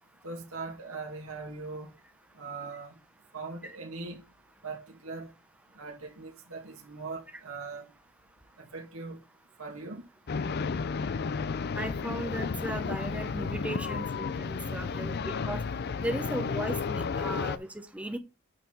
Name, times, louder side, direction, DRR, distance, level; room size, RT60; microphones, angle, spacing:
voice 1, 0.2-1.9 2.4-3.0 3.3-4.2 4.6-5.3 5.8-7.9 8.6-9.2 9.6-10.0, right 3 dB, 75° right, 2.3 m, -40 dB
sound 1, 10.3-17.6, left 5 dB, 50° left, 0.5 m, -32 dB
voice 2, 11.7-15.6 16.0-18.2, right 1 dB, 5° right, 0.8 m, -36 dB
9.0 x 4.6 x 4.6 m
head